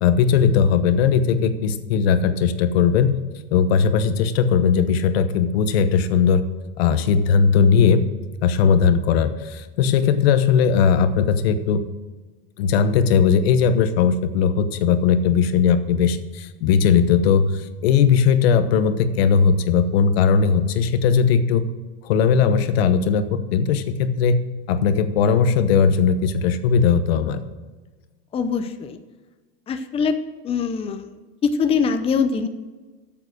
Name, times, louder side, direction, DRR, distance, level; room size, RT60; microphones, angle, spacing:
voice 1, 0.0-3.1 3.5-6.4 6.8-8.0 8.4-11.8 12.6-21.6 22.0-24.4 24.7-27.4, left 6 dB, 85° left, 11 dB, 1.0 m, -18 dB
voice 2, 28.3-29.0 29.7-30.2 30.4-31.1 31.4-32.5, left 5 dB, 20° left, 8 dB, 0.6 m, -22 dB
8.8 x 7.6 x 6.3 m, 1.3 s
supercardioid pair, 145°, 30 cm